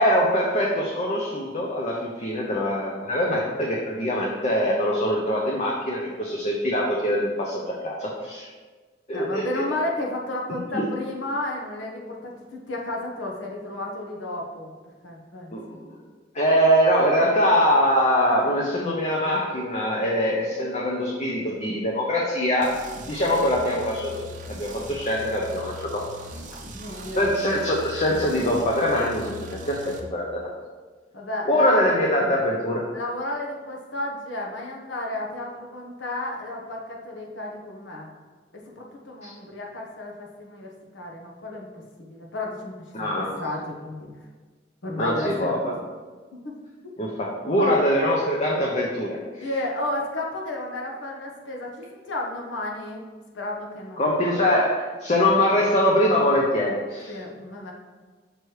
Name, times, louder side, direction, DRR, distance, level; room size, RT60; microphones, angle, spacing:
voice 1, 0.0-8.5 9.1-9.6 10.7-10.9 15.5-15.7 16.3-22.8 23.1-24.2 24.5-26.0 26.3-26.4 27.2-30.4 31.5-32.8 39.2-39.3 42.9-43.3 45.0-45.7 47.0-49.5 54.0-57.1, equal, 35° left, -3 dB, 0.6 m, -23 dB
voice 2, 9.1-14.7 15.0-15.8 26.5-27.3 31.1-31.8 32.9-38.1 38.5-44.1 44.8-45.7 46.4-46.5 46.8-46.9 47.6-47.8 49.4-53.1 53.3-54.1 57.1-57.7, left 1 dB, 85° left, -1 dB, 1.0 m, -32 dB
sound 1, 22.6-30.0, equal, 40° right, 0.6 m, -40 dB
6.6 x 3.1 x 4.6 m, 1.4 s
head